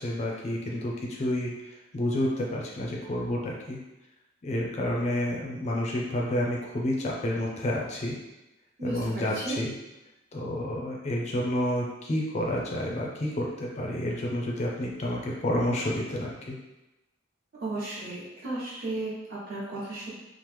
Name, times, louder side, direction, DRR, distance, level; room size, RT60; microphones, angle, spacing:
voice 1, 0.0-3.8 4.4-8.2 8.8-9.7 10.3-16.6, left 1 dB, 35° left, -2 dB, 0.4 m, -30 dB
voice 2, 8.8-9.6 17.6-20.1, right 2 dB, 50° right, -7 dB, 1.0 m, -34 dB
3.0 x 2.0 x 3.3 m, 1.0 s
head